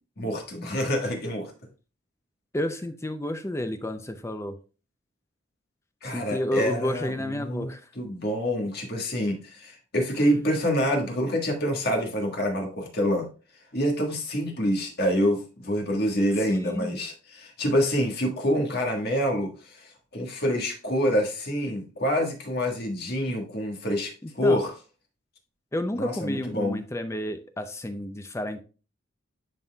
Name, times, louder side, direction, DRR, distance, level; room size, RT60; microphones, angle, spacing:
voice 1, 0.2-1.5 6.0-7.1 7.4-7.7 8.0-13.3 13.7-24.7 26.0-26.8, equal, 50° left, 2 dB, 1.5 m, -26 dB
voice 2, 2.5-4.6 6.0-7.8 10.2-10.3 16.5-17.0 24.2-24.6 25.7-28.6, left 1 dB, 15° left, 9 dB, 0.4 m, -31 dB
11.0 x 4.1 x 2.3 m, 0.35 s
head